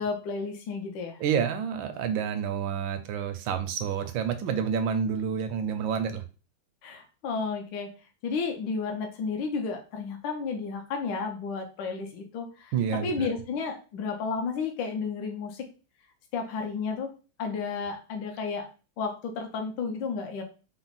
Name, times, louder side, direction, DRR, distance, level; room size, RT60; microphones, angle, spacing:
voice 1, 0.0-1.2 6.8-7.9 8.2-12.7 13.0-15.6 16.3-17.1 17.4-18.7 19.0-20.4, left 5 dB, 70° left, 4 dB, 1.3 m, -32 dB
voice 2, 1.2-6.2 12.7-13.3, right 7 dB, 75° right, 8 dB, 1.3 m, -29 dB
4.5 x 2.1 x 4.0 m, 0.34 s
omnidirectional pair, 2.2 m